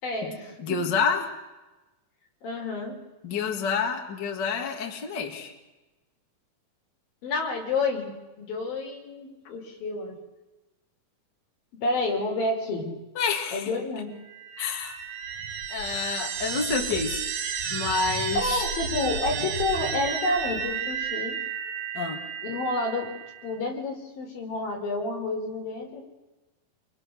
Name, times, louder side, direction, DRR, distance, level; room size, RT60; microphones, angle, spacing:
voice 1, 0.0-0.8 2.4-3.0 7.2-8.1 8.4-10.2 11.7-12.9 13.5-14.1 18.3-21.4 22.4-23.1 23.4-26.1, left 2 dB, 75° left, 1 dB, 6.1 m, -29 dB
voice 2, 0.6-1.3 3.2-5.5 13.2-13.7 14.6-15.0 15.7-17.2 17.7-18.7 21.9-22.2, left 5 dB, 35° left, 3 dB, 2.5 m, -28 dB
sound 1, 14.2-23.5, right 7 dB, 75° right, 3.5 m, -32 dB
27.0 x 24.0 x 6.5 m, 1.1 s
omnidirectional pair, 4.2 m